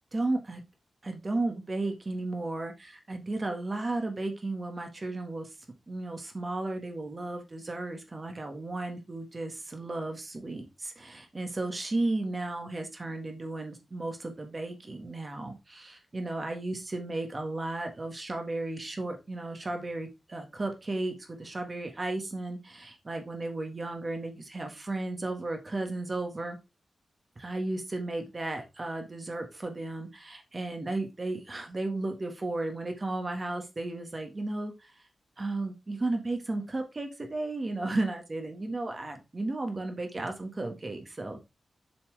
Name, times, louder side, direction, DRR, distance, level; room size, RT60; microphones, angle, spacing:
voice 1, 0.1-0.6 1.0-5.5 5.9-26.6 27.3-35.0 35.4-41.4, right 2 dB, 30° right, 5 dB, 1.6 m, -34 dB
7.5 x 5.8 x 3.3 m, 0.25 s
wide cardioid pair, 130°, 0 cm